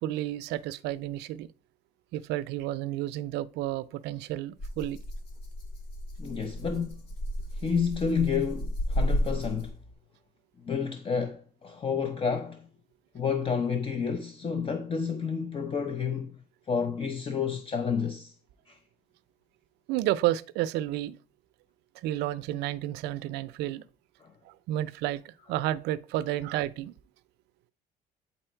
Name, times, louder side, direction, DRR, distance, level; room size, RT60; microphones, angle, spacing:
voice 1, 0.0-1.5 2.1-5.0 19.9-21.2 22.0-23.8 24.7-26.9, right 14 dB, 85° right, 0.5 m, -31 dB
Rattle (instrument), 4.6-9.9, equal, 70° left, 3.7 m, -33 dB
voice 2, 6.2-7.0 7.5-9.8 10.6-12.7 13.1-16.4 16.7-18.4 18.7-18.8 24.2-24.3, left 6 dB, 30° left, 0.8 m, -30 dB
8.8 x 4.2 x 4.4 m
cardioid pair, 110°, 17 cm